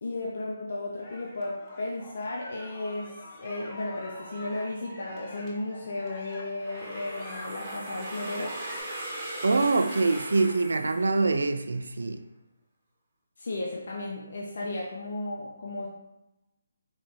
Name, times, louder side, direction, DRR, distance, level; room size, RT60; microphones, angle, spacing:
voice 1, 0.0-8.6 13.4-15.9, left 2 dB, 65° left, -2 dB, 0.6 m, -34 dB
sound 1, 1.0-8.8, left 2 dB, 20° left, 0.6 m, -46 dB
sound 2, 6.6-11.5, right 1 dB, 20° right, 0.9 m, -39 dB
voice 2, 9.4-12.2, right 3 dB, 80° right, 8 dB, 0.3 m, -24 dB
4.0 x 3.3 x 2.5 m, 0.94 s
hypercardioid pair, 165°, 0 cm